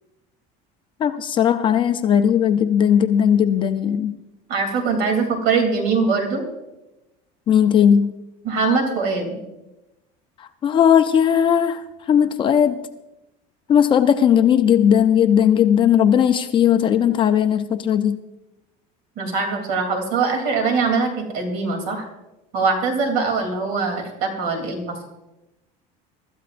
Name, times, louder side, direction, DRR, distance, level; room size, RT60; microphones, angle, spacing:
voice 1, 1.0-4.1 7.5-8.1 10.6-12.8 13.7-18.2, left 8 dB, 30° left, 8 dB, 0.5 m, -17 dB
voice 2, 4.5-6.4 8.4-9.4 19.2-22.1 22.5-25.0, right 4 dB, 55° right, 4 dB, 3.1 m, -22 dB
23.5 x 13.5 x 2.6 m, 0.97 s
cardioid pair, 165°, 18 cm